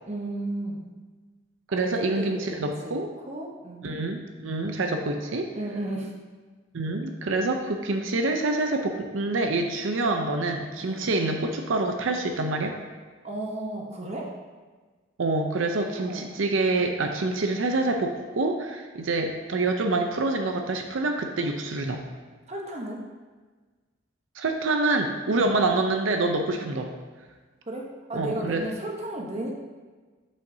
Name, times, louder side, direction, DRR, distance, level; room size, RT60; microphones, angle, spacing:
voice 1, 0.1-0.8 1.7-4.0 5.5-6.1 10.8-11.1 13.2-14.3 16.0-16.3 22.5-23.1 25.3-25.5 26.5-26.7 27.7-29.5, right 1 dB, 35° right, 0 dB, 0.9 m, -34 dB
voice 2, 1.7-3.1 3.8-5.5 6.7-12.8 15.2-22.0 24.3-26.9 28.1-28.6, right 2 dB, 80° right, 4 dB, 0.6 m, -26 dB
8.3 x 6.4 x 2.7 m, 1.4 s
head